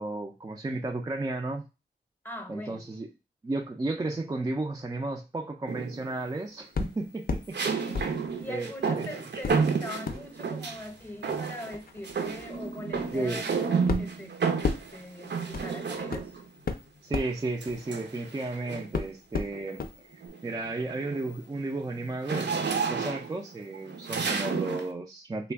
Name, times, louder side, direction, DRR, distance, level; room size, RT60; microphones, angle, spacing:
voice 1, 0.0-1.7 2.5-3.1 3.4-7.6 8.5-9.1 13.1-13.4 17.0-25.5, right 2 dB, 20° right, 0.3 m, -33 dB
voice 2, 2.2-2.9 7.6-16.3, left 1 dB, 10° left, 0.7 m, -42 dB
sound 1, 5.7-6.2 7.5-10.9 11.2-11.8 12.0-16.5 17.6-19.0 19.5-19.8 20.1-24.9, right 5 dB, 70° right, 0.5 m, -31 dB
sound 2, 6.7-7.5 7.9-8.9 9.4-18.5 18.9-19.9 20.3-20.4, left 4 dB, 55° left, 0.5 m, -35 dB
3.3 x 2.2 x 3.4 m
wide cardioid pair, 80°, 19 cm